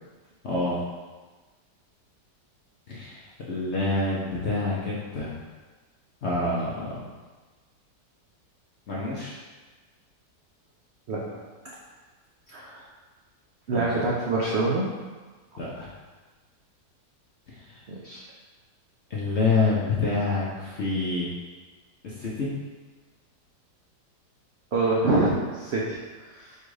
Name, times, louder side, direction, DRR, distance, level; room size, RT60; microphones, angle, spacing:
voice 1, 0.4-0.8 2.9-5.4 6.2-7.1 8.9-9.4 13.7-13.9 15.6-15.9 17.5-17.8 19.1-21.3 22.0-22.5, left 3 dB, 60° left, -6 dB, 0.8 m, -27 dB
voice 2, 11.1-11.4 12.5-12.8 13.7-14.9 15.5-15.6 17.9-18.2 24.7-26.6, right 2 dB, 80° right, -4 dB, 0.6 m, -26 dB
4.5 x 2.4 x 4.7 m, 1.3 s
omnidirectional pair, 1.9 m